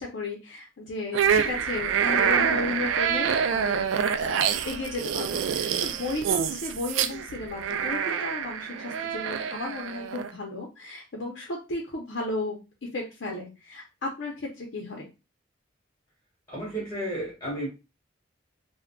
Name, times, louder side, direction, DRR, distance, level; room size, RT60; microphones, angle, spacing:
voice 1, 0.0-12.6 12.9-15.1, left 2 dB, 65° left, 0 dB, 0.6 m, -34 dB
sound 1, 1.1-10.3, right 7 dB, 75° right, 0.3 m, -26 dB
voice 2, 16.5-17.7, right 1 dB, 20° left, -6 dB, 1.3 m, -32 dB
3.6 x 2.1 x 2.2 m, 0.28 s
head